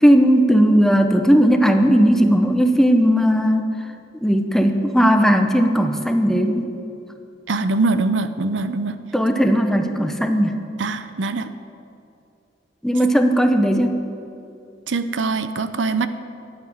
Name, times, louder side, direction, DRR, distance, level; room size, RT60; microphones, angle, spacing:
voice 1, 0.0-3.6 4.2-6.7 9.1-10.6 12.8-14.0, equal, ahead, 5 dB, 0.8 m, -17 dB
voice 2, 7.5-9.0 10.8-11.5 14.9-16.1, right 3 dB, 85° right, 12 dB, 0.7 m, -22 dB
11.5 x 8.8 x 8.9 m, 2.6 s
head